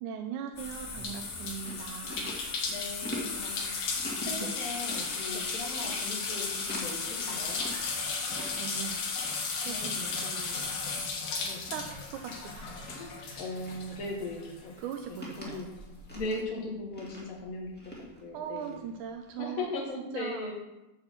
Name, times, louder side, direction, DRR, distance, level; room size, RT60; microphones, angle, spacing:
voice 1, 0.0-2.4 4.3-4.5 5.3-5.4 8.1-8.2 8.5-9.0 9.6-10.8 11.4-12.7 14.8-15.6 18.3-19.7 20.1-20.5, right 8 dB, 80° right, 4 dB, 1.9 m, -40 dB
Chewing mastication, 0.5-19.5, equal, 5° left, 1.1 m, -47 dB
sound 1, 0.6-14.6 14.9-16.1, left 4 dB, 70° left, 2.8 m, -35 dB
voice 2, 2.6-3.7 4.2-7.7 9.6-10.3 11.4-11.6 12.9-14.7 15.1-15.7 16.1-17.9 18.2-18.8 19.4-20.5, left 2 dB, 85° left, -1 dB, 0.7 m, -38 dB
8.7 x 4.3 x 7.3 m, 1.0 s
omnidirectional pair, 3.8 m